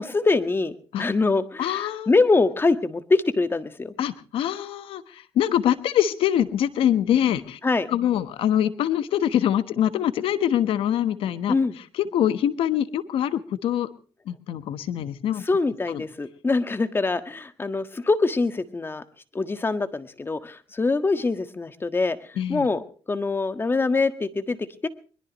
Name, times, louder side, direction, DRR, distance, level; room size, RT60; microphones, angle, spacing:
voice 1, 0.0-3.9 7.6-7.9 11.5-11.7 15.4-19.0 19.3-22.2 22.5-24.6 24.8-24.9, left 3 dB, 25° left, 11 dB, 1.5 m, -24 dB
voice 2, 1.6-2.1 4.0-7.6 7.9-11.5 11.9-13.9 14.3-15.4 15.9-16.0 22.4-22.7, left 10 dB, 85° left, 13 dB, 1.2 m, -24 dB
22.0 x 21.0 x 3.1 m, 0.38 s
cardioid pair, 105°, 9 cm